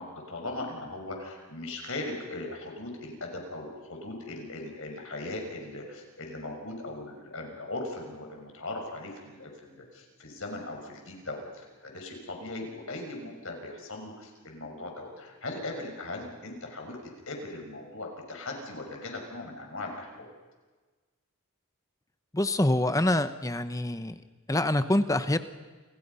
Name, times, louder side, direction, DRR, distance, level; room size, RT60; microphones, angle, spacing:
voice 1, 0.0-17.0 17.3-20.3, left 2 dB, 60° left, 2 dB, 6.2 m, -39 dB
voice 2, 22.3-24.1 24.5-25.4, left 1 dB, 15° left, 11 dB, 1.0 m, -25 dB
30.0 x 27.5 x 5.6 m, 1.3 s
head